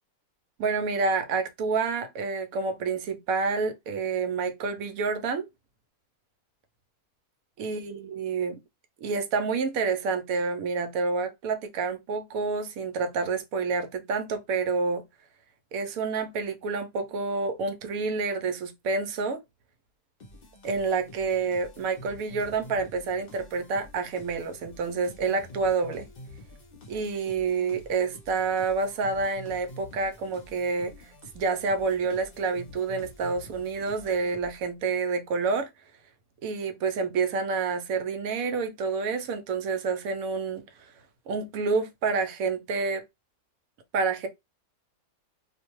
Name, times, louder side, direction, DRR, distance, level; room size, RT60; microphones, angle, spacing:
voice 1, 0.6-5.5 7.6-8.6 9.0-15.0 15.7-19.4 20.6-26.1 26.9-35.7 36.4-40.7 41.3-43.0 43.9-44.3, right 4 dB, 75° right, 1.0 m, -28 dB
sound 1, 20.2-34.8, left 1 dB, 50° left, 0.7 m, -48 dB
2.5 x 2.2 x 3.0 m
omnidirectional pair, 1.5 m